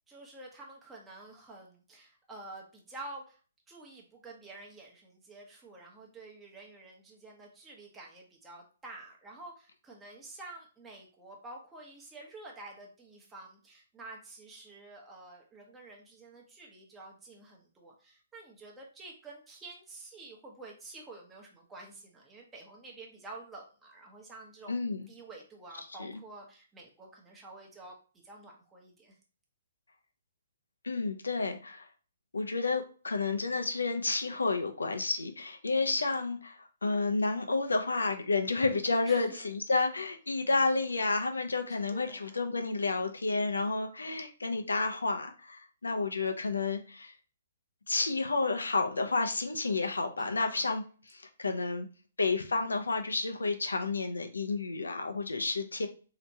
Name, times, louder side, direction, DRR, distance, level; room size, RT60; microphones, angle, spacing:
voice 1, 0.1-3.4 3.7-24.8 25.1-27.9 28.2-29.1 39.1-39.5 41.9-42.5 50.2-50.7, right 2 dB, 10° right, -2 dB, 0.9 m, -49 dB
voice 2, 24.7-25.1 26.0-26.1 30.8-31.8 32.3-47.1 47.9-51.9 52.2-55.9, left 3 dB, 90° left, 5 dB, 0.7 m, -31 dB
3.3 x 2.9 x 2.7 m, 0.37 s
hypercardioid pair, 135°, 0 cm